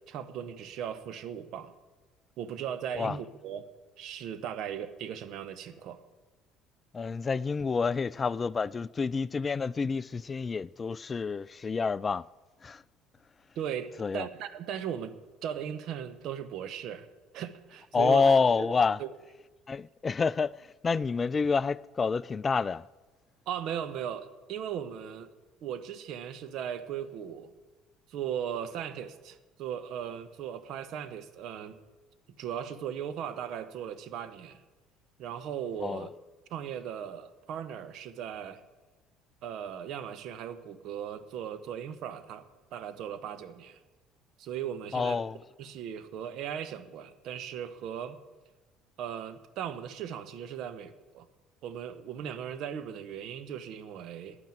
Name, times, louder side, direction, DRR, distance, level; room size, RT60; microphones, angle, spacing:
voice 1, 0.0-1.7 2.4-3.6 4.0-6.0 13.6-15.1 15.4-17.1 17.3-18.2 18.6-18.7 19.0-19.1 23.5-25.3 25.6-27.5 28.1-31.8 32.4-34.6 35.2-36.1 36.5-38.6 39.4-43.8 44.4-45.2 45.6-48.2 49.0-51.3 51.6-54.4, right 9 dB, 60° right, 1.0 m, -37 dB
voice 2, 6.9-12.2 12.6-12.8 14.0-14.3 17.9-19.0 19.7-22.8 35.8-36.1 44.9-45.4, left 5 dB, 30° left, 0.3 m, -28 dB
10.0 x 9.3 x 9.1 m
hypercardioid pair, 60°, 0 cm